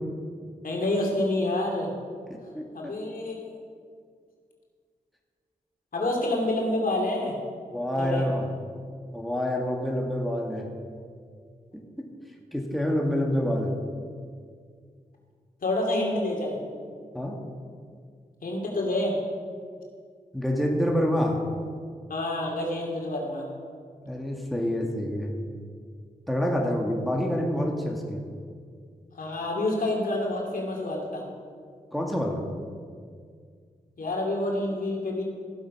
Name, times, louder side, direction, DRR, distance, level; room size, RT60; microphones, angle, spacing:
voice 1, 0.6-1.9 2.7-3.5 5.9-7.4 8.0-8.3 15.6-16.6 18.4-19.2 22.1-23.5 29.1-31.2 34.0-35.2, left 1 dB, 65° left, -1 dB, 2.7 m, -28 dB
voice 2, 2.3-2.9 7.7-8.4 9.1-10.7 11.7-12.1 12.5-13.7 17.1-17.4 20.3-21.4 24.1-25.3 26.3-28.2 31.9-32.4, equal, ahead, 0 dB, 2.1 m, -27 dB
14.5 x 7.7 x 5.6 m, 2.1 s
supercardioid pair, 40°, 16 cm